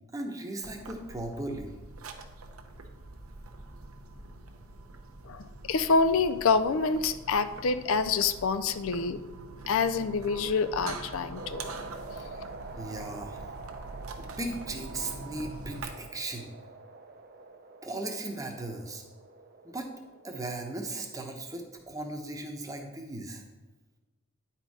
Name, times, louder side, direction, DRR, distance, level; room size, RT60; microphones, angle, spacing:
voice 1, 0.1-1.7 12.8-13.4 14.2-16.5 17.8-19.0 19.6-19.9 20.2-23.4, right 2 dB, 15° right, 3 dB, 0.9 m, -37 dB
sound 1, 0.6-15.9, right 3 dB, 75° right, 0.9 m, -44 dB
voice 2, 5.2-9.2 9.7-11.6 12.1-12.2, left 4 dB, 65° left, 10 dB, 0.4 m, -27 dB
sound 2, 11.3-21.2, right 3 dB, 45° right, 0.6 m, -47 dB
9.9 x 4.4 x 4.8 m, 1.2 s
head